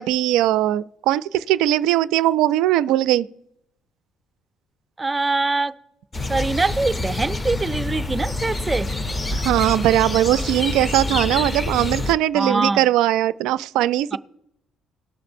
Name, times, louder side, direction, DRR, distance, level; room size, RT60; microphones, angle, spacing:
voice 1, 0.0-3.3 9.3-14.2, right 13 dB, 80° right, 0.3 m, -20 dB
voice 2, 5.0-5.7 6.3-8.9 12.3-12.9 14.1-14.2, right 3 dB, 20° right, 0.5 m, -23 dB
sound 1, 6.1-12.1, left 2 dB, 25° left, 0.5 m, -26 dB
18.5 x 6.5 x 2.6 m
supercardioid pair, 80°, 0 cm